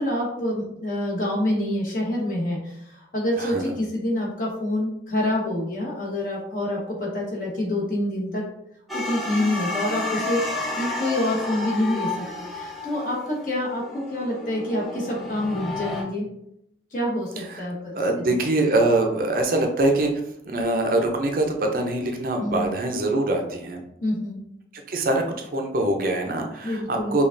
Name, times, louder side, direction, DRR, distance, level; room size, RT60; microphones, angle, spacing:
voice 1, 0.0-8.4 8.9-16.3 16.9-18.0 18.3-18.4 22.4-22.7 24.0-24.4 26.6-27.2, left 1 dB, 45° left, -4 dB, 1.2 m, -27 dB
voice 2, 3.4-3.7 17.5-17.6 18.0-23.8 24.9-27.2, right 2 dB, 50° right, 3 dB, 0.5 m, -24 dB
sound 1, 8.9-16.0, left 2 dB, ahead, 0.6 m, -31 dB
5.0 x 2.3 x 2.5 m, 0.77 s
head